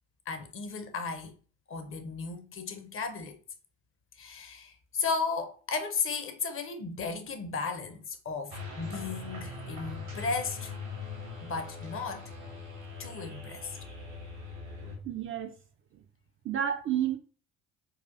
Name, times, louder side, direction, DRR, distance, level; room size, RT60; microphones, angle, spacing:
voice 1, 0.3-1.4 1.7-3.4 4.2-10.7 11.5-12.3 13.0-13.8, left 4 dB, 35° left, 0.7 m, -35 dB
sound 1, 8.5-15.0, left 3 dB, 85° right, 1.4 m, -41 dB
voice 2, 14.8-15.5 16.4-17.2, right 10 dB, 35° right, 0.4 m, -31 dB
4.0 x 2.3 x 2.6 m
hypercardioid pair, 50°, 38 cm